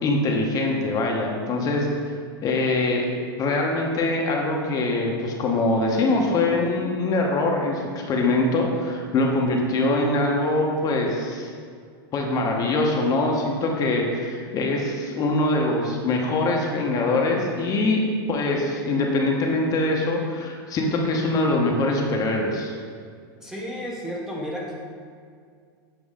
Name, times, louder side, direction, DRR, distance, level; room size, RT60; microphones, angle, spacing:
voice 1, 0.0-1.9 2.4-3.1 3.4-11.5 12.1-18.0 18.3-22.8, left 2 dB, 30° left, 0 dB, 0.8 m, -23 dB
voice 2, 23.4-24.7, equal, 5° right, -3 dB, 0.7 m, -32 dB
7.3 x 3.0 x 4.9 m, 2.1 s
supercardioid pair, 135°, 12 cm